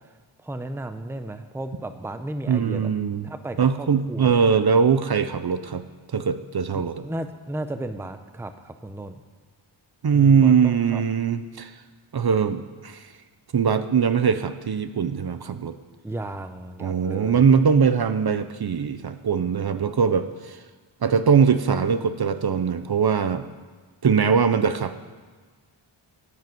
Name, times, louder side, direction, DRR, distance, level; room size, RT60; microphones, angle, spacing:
voice 1, 0.4-2.9 3.2-4.6 6.7-9.2 10.1-11.0 16.0-17.4, right 1 dB, 5° right, 9 dB, 0.7 m, -34 dB
voice 2, 2.5-3.3 3.6-5.8 6.1-7.0 10.0-11.7 12.1-13.1 13.5-15.8 16.8-20.6 21.0-23.5 24.0-24.9, right 6 dB, 50° right, 11 dB, 0.7 m, -21 dB
12.5 x 9.6 x 7.8 m, 1.5 s
wide cardioid pair, 130°, 49 cm